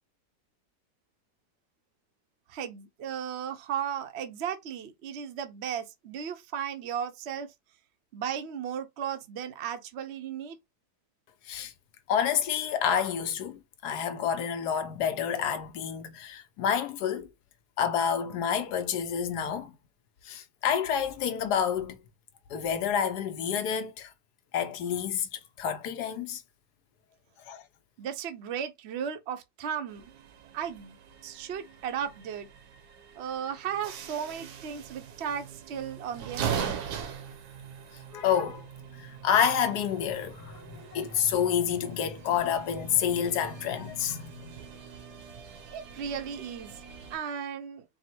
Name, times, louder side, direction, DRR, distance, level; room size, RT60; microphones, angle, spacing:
voice 1, 2.5-7.5 8.1-10.6 28.0-30.1 30.5-31.0 31.2-32.5 33.2-36.5 45.7-46.7 47.1-47.8, right 8 dB, 55° right, 0.8 m, -35 dB
voice 2, 12.1-17.3 17.8-19.7 20.2-22.0 22.5-24.1 24.5-26.4 27.5-27.6 38.1-38.7 39.0-44.6, left 8 dB, 80° left, 1.3 m, -29 dB
sound 1, 29.9-47.2, right 7 dB, 75° right, 1.3 m, -41 dB
4.6 x 2.1 x 4.3 m
omnidirectional pair, 1.7 m